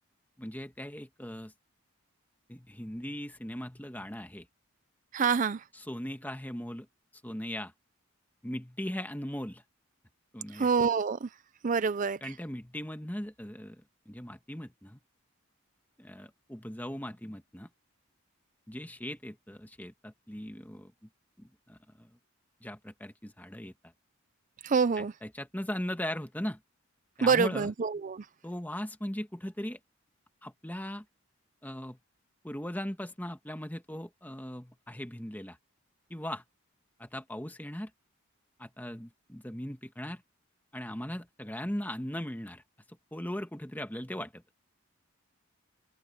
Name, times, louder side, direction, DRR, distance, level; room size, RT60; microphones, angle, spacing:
voice 1, 0.4-1.5 2.5-4.5 5.7-6.9 7.2-7.7 8.4-9.6 10.3-10.7 12.2-15.0 16.0-17.7 18.7-20.9 21.4-22.1 22.6-23.7 25.0-26.6 27.2-27.7 28.4-29.8 30.4-31.0 31.6-32.0 32.4-35.6 36.1-36.4 37.0-37.9 38.6-40.2 40.7-42.6 43.1-44.4, left 1 dB, 10° left, 1.5 m, -39 dB
voice 2, 5.1-5.6 10.5-11.3 11.6-12.2 24.6-25.1 27.2-28.2, right 5 dB, 40° right, 0.4 m, -26 dB
head